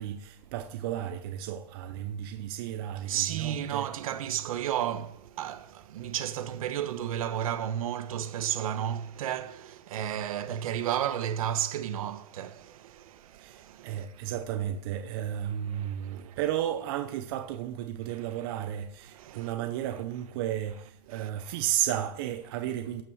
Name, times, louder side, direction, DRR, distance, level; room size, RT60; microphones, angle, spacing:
voice 1, 0.0-3.9 13.4-23.0, right 11 dB, 40° right, 0.6 m, -33 dB
voice 2, 3.1-14.2 15.7-16.4 19.1-19.5 21.1-21.6, right 10 dB, 65° right, 1.2 m, -33 dB
12.5 x 6.0 x 6.3 m
supercardioid pair, 175°, 20 cm